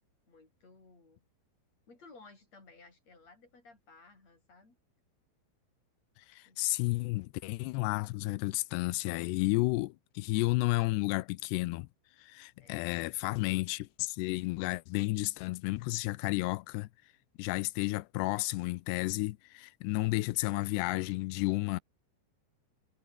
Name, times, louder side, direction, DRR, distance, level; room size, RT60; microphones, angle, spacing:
voice 1, 0.3-1.2 1.9-4.8 6.5-6.6 12.6-12.9, left 3 dB, 35° left, 8.7 m, -57 dB
voice 2, 6.2-11.9 12.2-16.9 17.4-21.8, left 21 dB, 90° left, 2.4 m, -32 dB
omnidirectional pair, 5.6 m